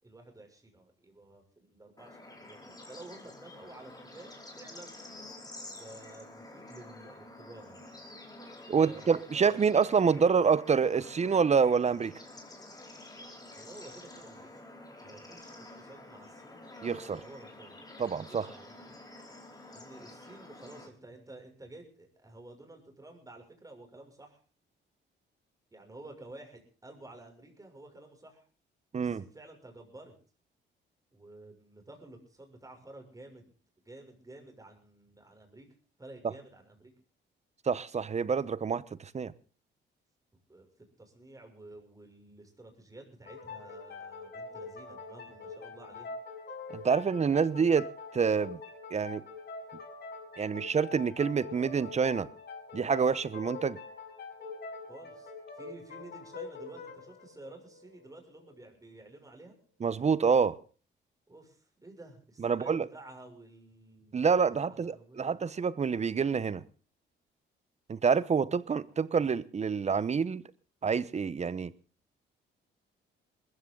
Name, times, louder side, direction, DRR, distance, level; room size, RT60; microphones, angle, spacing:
voice 1, 0.0-5.1 5.8-7.9 8.7-10.3 13.5-14.5 15.0-16.6 17.2-17.8 18.3-19.0 19.7-24.4 25.7-28.4 28.9-30.1 31.1-33.5 33.8-35.7 36.0-36.9 40.5-46.1 54.9-59.6 61.3-64.4 64.7-65.4, right 2 dB, 15° right, 6.6 m, -51 dB
Bird / Insect / Frog, 2.0-20.9, left 2 dB, 20° left, 4.8 m, -49 dB
voice 2, 8.7-12.1 16.8-17.2 18.0-18.5 28.9-29.2 37.7-39.3 46.7-48.6 48.9-49.2 50.4-52.3 52.7-53.8 59.8-60.6 62.4-62.9 64.1-66.6 67.9-70.4 70.8-71.7, right 6 dB, 35° right, 1.0 m, -27 dB
fantasy flute, 43.2-58.6, left 4 dB, 55° left, 6.8 m, -44 dB
21.0 x 14.5 x 3.9 m
cardioid pair, 90°, 20 cm